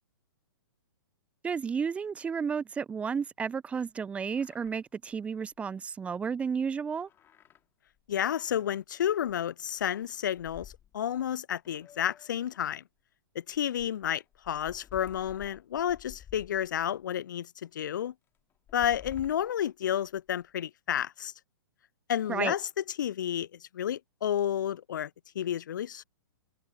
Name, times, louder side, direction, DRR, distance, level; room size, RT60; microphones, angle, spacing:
voice 1, 1.4-7.1 22.3-22.5, right 6 dB, 10° right, 0.7 m, -32 dB
sound 1, 4.3-4.8 5.1-5.2 5.5-5.6 7.0-7.6 8.0-8.1 9.2-9.3 9.7-11.3 11.7-12.7 13.5-17.0 17.6-17.7 18.5-20.4, left 10 dB, 20° left, 3.3 m, -52 dB
voice 2, 8.1-12.8 13.3-18.1 18.7-21.3 22.1-22.7 23.0-25.1 25.3-26.0, left 10 dB, 55° left, 0.6 m, -31 dB
figure-of-eight pair, 115°, 12 cm